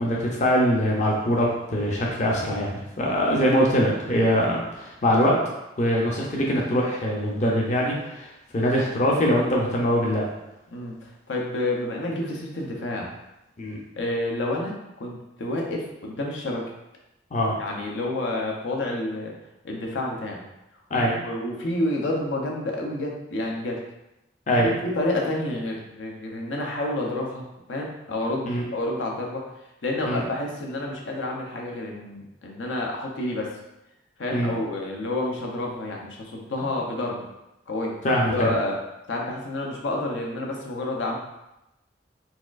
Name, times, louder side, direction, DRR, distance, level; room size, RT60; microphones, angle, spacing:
voice 1, 0.0-5.4 5.8-8.3 8.5-10.3 13.6-13.8 17.3-17.5 20.9-21.2 24.5-24.7 28.4-28.6 30.1-30.2 34.3-34.6 38.0-38.5, equal, 40° left, -2 dB, 0.5 m, -23 dB
voice 2, 10.7-13.1 14.0-16.6 17.6-19.3 19.6-20.4 21.0-23.8 24.6-27.4 27.7-29.4 29.8-33.5 34.2-37.2 37.7-37.9 38.3-38.8 39.1-41.2, left 1 dB, 85° left, -1 dB, 0.6 m, -29 dB
4.1 x 2.4 x 2.4 m, 0.91 s
head